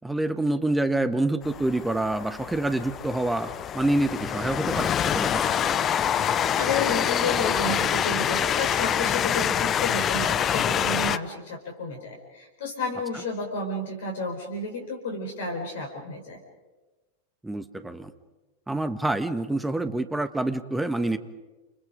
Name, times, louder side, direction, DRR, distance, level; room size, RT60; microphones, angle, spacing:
voice 1, 0.0-5.6 17.4-18.1 18.7-21.2, right 2 dB, 5° right, 10 dB, 1.6 m, -27 dB
Train, 1.4-11.2, left 9 dB, 25° left, 0.8 m, -26 dB
Wind instrument woodwind instrument, 4.7-10.2, right 1 dB, 75° right, 5.0 m, -44 dB
voice 2, 6.6-16.4, left 2 dB, 60° left, 1 dB, 4.7 m, -31 dB
29.0 x 28.5 x 5.2 m, 1.2 s
figure-of-eight pair, 90°, 0 cm